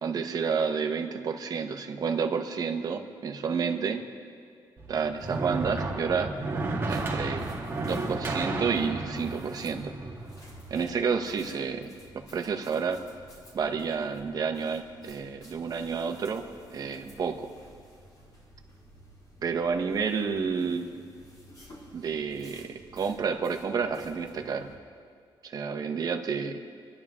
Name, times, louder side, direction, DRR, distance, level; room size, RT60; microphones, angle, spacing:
voice 1, 0.0-4.0 4.9-6.3 6.9-7.4 7.8-9.9 10.7-11.9 12.3-13.0 13.5-16.4 16.7-17.5 19.4-21.0 21.9-24.7 25.4-26.6, right 5 dB, 45° right, 5 dB, 1.1 m, -30 dB
sound 1, 4.8-10.9, right 2 dB, 25° right, 1.8 m, -33 dB
sound 2, 6.9-24.7, equal, 45° left, 3.9 m, -53 dB
28.0 x 11.0 x 3.7 m, 2.2 s
wide cardioid pair, 150°, 9 cm